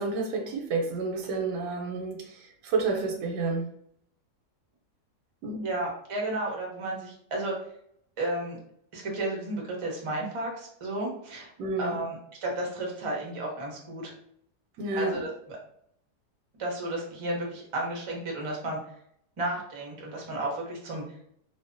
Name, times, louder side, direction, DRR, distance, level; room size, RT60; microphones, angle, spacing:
voice 1, 0.0-3.7 5.4-5.6 11.6-12.0 14.8-15.2, right 3 dB, 85° right, 3 dB, 1.2 m, -30 dB
voice 2, 5.6-7.6 8.2-8.6 8.9-11.5 11.8-14.1 15.0-15.3 16.6-18.8 19.4-21.0, right 1 dB, 50° right, -2 dB, 0.3 m, -33 dB
2.7 x 2.2 x 2.5 m, 0.68 s
omnidirectional pair, 1.7 m